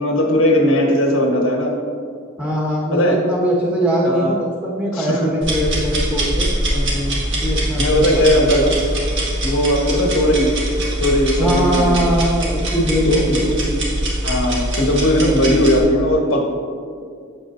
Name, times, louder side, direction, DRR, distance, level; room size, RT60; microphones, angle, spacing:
voice 1, 0.0-1.7 2.9-3.2 4.0-4.4 4.9-5.3 6.7-7.2 7.8-8.8 9.4-10.5 11.0-12.0 13.0-13.4 14.2-16.4, equal, 80° left, 0 dB, 1.2 m, -18 dB
voice 2, 2.4-6.5 7.3-8.3 11.4-13.9, equal, 5° right, -5 dB, 1.4 m, -21 dB
sound 1, 5.4-15.8, right 1 dB, 60° right, 1.8 m, -22 dB
8.3 x 7.2 x 2.6 m, 2.1 s
head